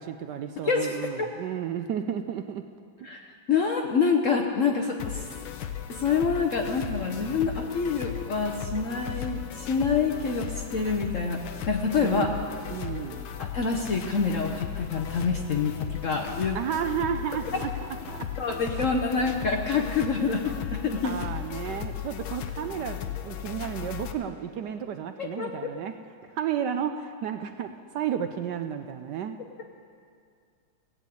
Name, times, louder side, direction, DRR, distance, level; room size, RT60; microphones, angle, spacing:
voice 1, 0.0-2.7 3.0-3.1 12.0-12.3 12.7-13.3 16.5-18.5 21.0-26.0 26.3-29.4, right 8 dB, 70° right, 8 dB, 1.1 m, -32 dB
voice 2, 0.6-1.3 3.0-5.2 5.9-12.3 13.4-16.6 18.4-21.2 25.2-25.7, left 5 dB, 55° left, 3 dB, 0.9 m, -27 dB
sound 1, 5.0-24.1, left 9 dB, 85° left, 1.6 m, -36 dB
17.0 x 8.1 x 8.3 m, 2.3 s
omnidirectional pair, 2.2 m